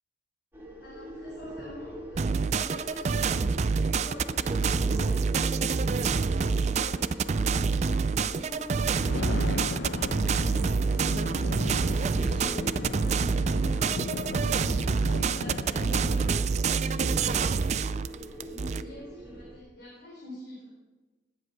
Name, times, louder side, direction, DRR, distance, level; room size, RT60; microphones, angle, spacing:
sound 1, 0.5-19.6, equal, 15° right, 2.2 m, -42 dB
voice 1, 0.8-6.0 6.3-11.9 12.2-14.3 14.9-20.7, left 1 dB, 65° left, -6 dB, 4.5 m, -46 dB
sound 2, 2.2-18.8, right 5 dB, 40° right, 0.3 m, -27 dB
Thunder, 8.7-16.4, left 3 dB, 85° left, 0.7 m, -37 dB
19.0 x 8.0 x 4.6 m, 1.2 s
head